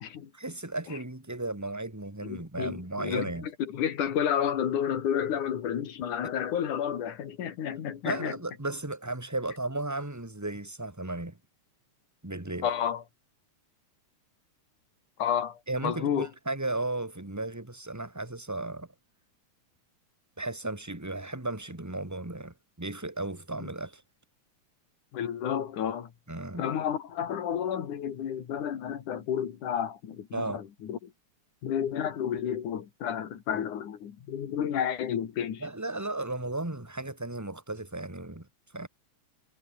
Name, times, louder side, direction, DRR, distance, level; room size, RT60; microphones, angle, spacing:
voice 1, 0.3-3.5 8.0-11.4 12.2-12.7 15.7-18.9 20.4-24.0 26.3-26.6 30.3-30.6 35.6-38.5 38.7-38.9, right 2 dB, 5° right, 2.2 m, -35 dB
voice 2, 2.2-8.4 12.6-13.0 15.2-16.3 23.6-23.7 25.1-26.1 26.6-31.1 31.6-35.7, left 9 dB, 80° left, 3.7 m, -31 dB
omnidirectional pair, 3.5 m